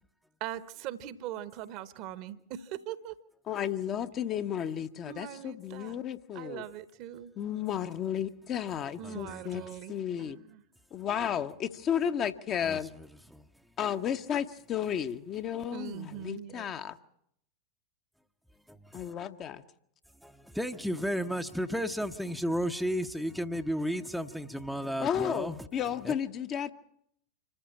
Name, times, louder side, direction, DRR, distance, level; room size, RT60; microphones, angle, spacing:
voice 1, 0.4-3.2 5.0-6.0 6.3-7.3 9.0-10.6 15.7-16.7, right 11 dB, 40° right, 1.1 m, -41 dB
voice 2, 3.5-6.6 7.4-9.6 9.9-10.4 10.9-12.9 13.8-17.0 18.9-19.6 25.0-26.7, left 9 dB, 30° left, 1.0 m, -33 dB
voice 3, 9.0-9.7 12.6-13.4 18.7-19.0 20.2-25.6 26.0-26.1, equal, ahead, 0.8 m, -34 dB
26.0 x 14.5 x 8.6 m
figure-of-eight pair, 90°, 0 cm